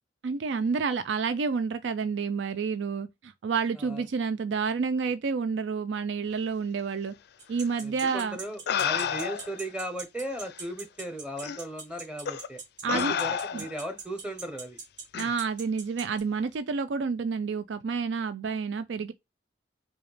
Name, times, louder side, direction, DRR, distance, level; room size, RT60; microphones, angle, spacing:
voice 1, 0.2-7.1 7.5-8.4 12.8-13.1 13.5-13.6 15.2-19.1, right 5 dB, 85° right, 0.4 m, -29 dB
sound 1, 7.4-16.2, right 5 dB, 70° right, 1.9 m, -40 dB
voice 2, 7.8-14.8, right 1 dB, 5° right, 0.8 m, -37 dB
sound 2, 8.0-8.1 8.7-9.6 10.5-10.6 11.4-11.6 12.2-12.5 12.9-13.8 15.1-15.3, left 8 dB, 60° left, 0.4 m, -30 dB
4.9 x 2.4 x 3.2 m
head